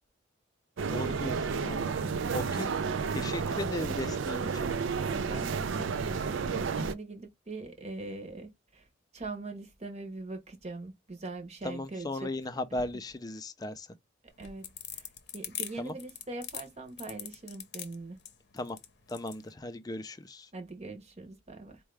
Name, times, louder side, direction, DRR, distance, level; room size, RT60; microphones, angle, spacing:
sound 1, 0.8-6.9, right 5 dB, 70° right, 0.4 m, -31 dB
voice 1, 0.9-2.0 2.3-2.7 3.1-4.5 11.6-13.9 15.8-16.0 18.5-18.8 19.1-20.5, left 2 dB, 20° left, 0.4 m, -37 dB
voice 2, 2.4-2.7 5.1-8.9 9.1-12.3 14.4-15.1 15.3-18.2 20.5-21.8, right 3 dB, 35° right, 0.8 m, -42 dB
sound 2, 14.3-19.4, left 10 dB, 55° left, 0.7 m, -41 dB
4.5 x 2.3 x 3.2 m
head